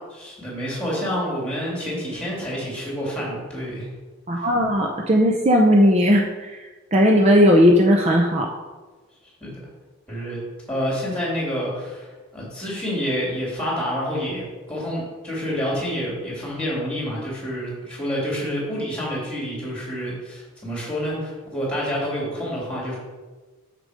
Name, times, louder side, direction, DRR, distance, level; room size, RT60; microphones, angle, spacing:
voice 1, 0.1-3.9 9.4-9.6 10.1-10.4 10.7-12.1 12.3-23.0, equal, 5° left, -5 dB, 3.0 m, -28 dB
voice 2, 4.3-6.5 6.9-8.5, equal, 30° right, 1 dB, 0.6 m, -16 dB
6.8 x 6.7 x 5.1 m, 1.3 s
head